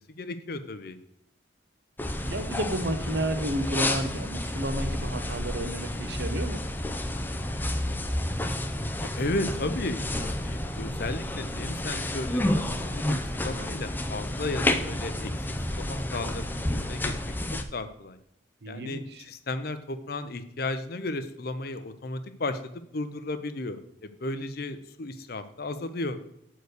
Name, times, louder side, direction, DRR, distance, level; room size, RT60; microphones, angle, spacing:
voice 1, 0.2-1.0 9.0-13.0 13.3-18.2 18.7-26.2, left 2 dB, 50° left, 10 dB, 0.6 m, -34 dB
sound 1, 2.0-17.6, left 1 dB, 10° left, 0.5 m, -30 dB
voice 2, 2.2-6.6 18.6-19.3, right 1 dB, 55° right, 8 dB, 0.9 m, -32 dB
8.1 x 4.6 x 6.4 m, 0.77 s
head